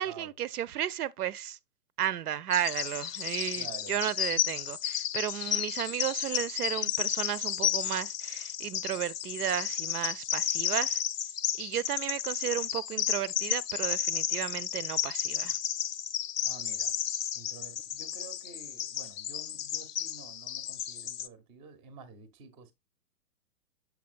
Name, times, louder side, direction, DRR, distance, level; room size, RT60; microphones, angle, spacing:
voice 1, 0.0-1.6 2.0-11.0 11.6-15.6, right 11 dB, 75° right, 0.5 m, -33 dB
Bird vocalization bird call bird song, 2.5-21.3, left 10 dB, 90° left, 0.5 m, -33 dB
voice 2, 3.5-4.0 16.4-17.0 17.3-22.7, right 5 dB, 15° right, 0.5 m, -49 dB
7.0 x 5.9 x 2.5 m
hypercardioid pair, 125°, 46 cm